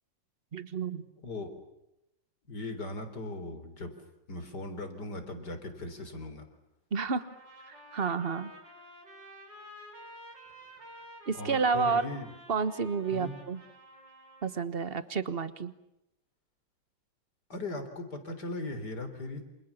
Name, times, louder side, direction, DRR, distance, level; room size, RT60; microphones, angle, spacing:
voice 1, 0.5-1.0 6.9-7.2 7.7-8.5 11.3-12.1 12.5-13.6 14.4-15.7, right 5 dB, 35° right, 13 dB, 1.4 m, -30 dB
voice 2, 2.5-3.9 4.3-6.4 11.3-12.3 13.1-13.4 17.5-19.5, left 2 dB, 60° left, 7 dB, 4.4 m, -38 dB
Trumpet, 7.2-14.7, equal, 70° right, 6.6 m, -51 dB
29.0 x 27.5 x 7.2 m, 0.87 s
omnidirectional pair, 2.0 m